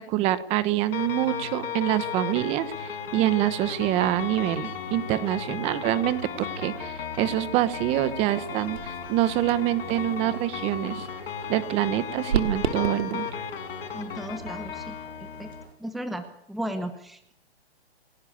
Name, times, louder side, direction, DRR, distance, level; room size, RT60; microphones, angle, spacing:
voice 1, 0.1-11.1 11.5-13.3, right 14 dB, 20° right, 14 dB, 1.2 m, -26 dB
sound 1, 0.9-15.6, left 6 dB, 60° left, 6.3 m, -35 dB
sound 2, 8.0-15.7, right 6 dB, 70° right, 3.5 m, -36 dB
voice 2, 13.9-14.9 15.2-15.5 15.8-17.3, equal, ahead, 8 dB, 1.0 m, -35 dB
29.0 x 12.5 x 8.7 m, 0.74 s
hypercardioid pair, 150°, 32 cm